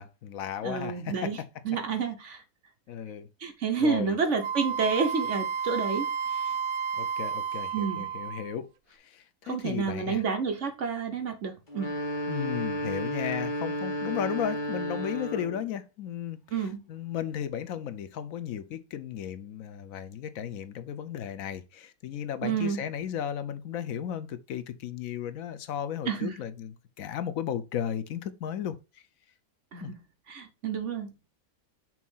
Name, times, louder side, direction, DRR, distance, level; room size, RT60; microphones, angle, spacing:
voice 1, 0.0-1.3 2.9-3.3 3.8-4.2 6.9-10.2 12.3-29.0 29.8-29.9, left 9 dB, 70° left, 1.0 m, -35 dB
voice 2, 0.6-1.4 1.6-2.4 3.4-6.1 6.3-6.5 7.7-8.1 9.5-11.9 16.5-16.8 22.4-22.8 26.1-26.3 29.7-29.9 30.3-31.1, right 5 dB, 55° right, 1.2 m, -29 dB
Wind instrument woodwind instrument, 4.4-8.5, right 6 dB, 80° right, 1.1 m, -32 dB
sound 1, 11.7-15.7, equal, 35° left, 1.6 m, -32 dB
6.1 x 2.9 x 5.4 m
omnidirectional pair, 1.5 m